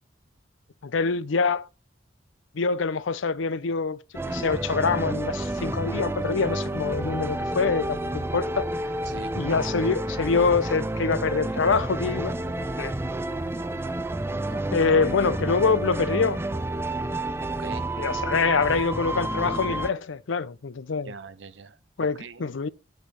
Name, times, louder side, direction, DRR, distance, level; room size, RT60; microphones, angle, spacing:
voice 1, 0.8-1.7 2.5-4.0 4.3-8.7 9.3-12.4 12.8-12.9 14.7-16.4 18.0-21.1 22.0-22.7, left 5 dB, 90° left, 0.5 m, -25 dB
sound 1, 4.1-19.9, right 1 dB, 15° right, 0.4 m, -30 dB
voice 2, 14.3-14.7 17.6-17.9 21.0-22.4, right 4 dB, 70° right, 0.8 m, -42 dB
10.0 x 5.5 x 4.1 m
head